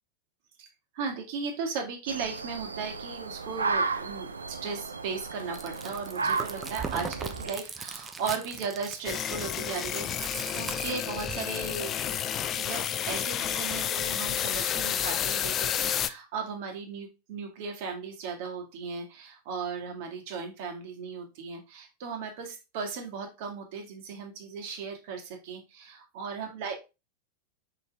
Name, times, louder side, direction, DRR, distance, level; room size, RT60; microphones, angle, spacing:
voice 1, 0.9-12.2 12.6-26.8, right 5 dB, 50° right, 3 dB, 2.0 m, -36 dB
sound 1, 2.1-7.5, right 4 dB, 75° right, 0.6 m, -34 dB
Chewing mastication, 5.4-11.5, right 5 dB, 15° right, 0.9 m, -39 dB
sound 2, 9.0-16.1, left 10 dB, 30° left, 0.4 m, -30 dB
6.1 x 5.1 x 3.5 m, 0.27 s
figure-of-eight pair, 90°, 0 cm